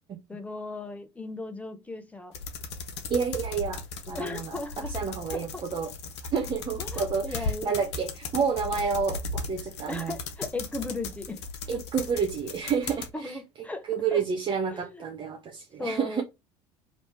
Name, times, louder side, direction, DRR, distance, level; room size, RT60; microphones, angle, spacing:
voice 1, 0.3-2.3 4.1-5.6 6.8-7.7 9.9-11.4 11.7-11.8 13.1-13.9 14.1-14.2 14.7-15.0 15.8-16.2, left 2 dB, 10° left, 0.9 m, -37 dB
sound 1, 2.3-13.1, left 3 dB, 65° left, 0.8 m, -37 dB
voice 2, 3.1-5.9 6.3-10.2 11.7-16.2, right 6 dB, 30° right, 0.7 m, -30 dB
3.2 x 2.8 x 4.3 m
figure-of-eight pair, 65°, 15 cm